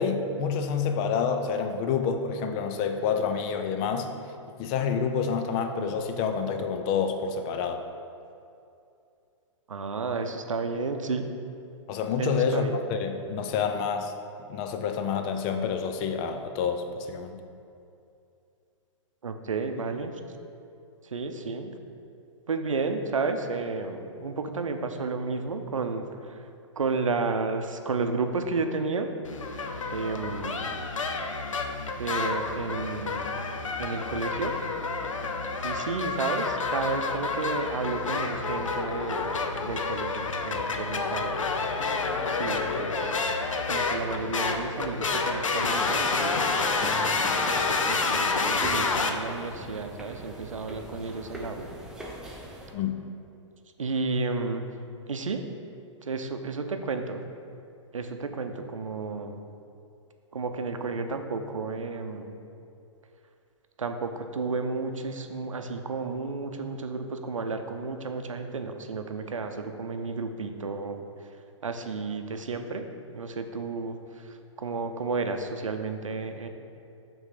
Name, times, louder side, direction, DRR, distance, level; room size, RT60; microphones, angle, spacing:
voice 1, 0.0-4.1 4.6-7.8 11.9-14.1 14.5-17.4 52.7-52.9, left 6 dB, 35° left, 6 dB, 0.5 m, -28 dB
voice 2, 9.7-11.3 12.2-12.8 19.2-20.1 21.1-21.7 22.5-26.1 26.8-29.1 29.9-30.6 32.0-33.3 33.8-34.6 35.6-41.5 42.3-43.1 43.7-47.3 47.9-51.7 53.8-54.7 55.1-55.5 56.1-57.2 57.9-59.4 60.3-62.3 63.8-71.0 71.6-72.9 73.1-74.0 74.6-76.5, right 4 dB, 90° right, 7 dB, 0.6 m, -32 dB
sound 1, 29.2-49.1, left 4 dB, 90° left, 0.6 m, -29 dB
sound 2, 45.7-52.7, right 1 dB, 5° right, 0.7 m, -40 dB
5.9 x 3.6 x 5.8 m, 2.6 s
hypercardioid pair, 125°, 16 cm